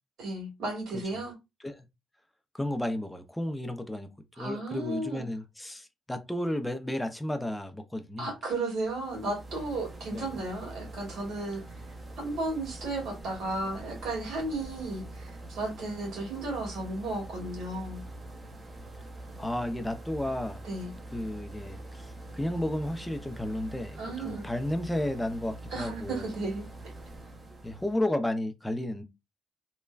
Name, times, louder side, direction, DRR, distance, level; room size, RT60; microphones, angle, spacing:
voice 1, 0.2-1.3 4.3-5.3 8.2-11.6 12.2-18.0 20.6-20.9 24.0-24.5 25.7-26.6, right 2 dB, 70° right, 1.7 m, -34 dB
voice 2, 2.5-8.3 10.1-10.4 19.4-20.6 21.1-26.3 27.6-29.0, left 1 dB, 5° left, 0.5 m, -33 dB
sound 1, 8.8-28.2, right 2 dB, 25° right, 0.8 m, -44 dB
3.2 x 2.1 x 2.3 m
cardioid pair, 90°, 0 cm